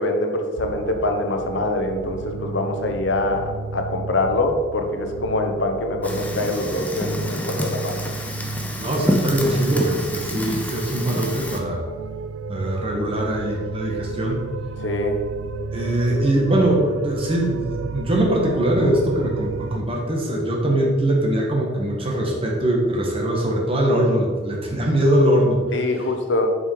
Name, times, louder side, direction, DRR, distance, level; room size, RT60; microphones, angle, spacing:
voice 1, 0.0-8.0 14.8-15.2 25.7-26.5, left 2 dB, 75° left, 4 dB, 1.0 m, -24 dB
sound 1, 0.6-19.8, right 4 dB, 85° right, 0.4 m, -33 dB
Fire, 6.0-11.6, left 1 dB, 10° left, 0.8 m, -28 dB
voice 2, 8.8-11.8 12.5-14.4 15.7-25.6, right 1 dB, 30° right, -1 dB, 1.6 m, -21 dB
6.9 x 5.5 x 4.8 m, 1.5 s
head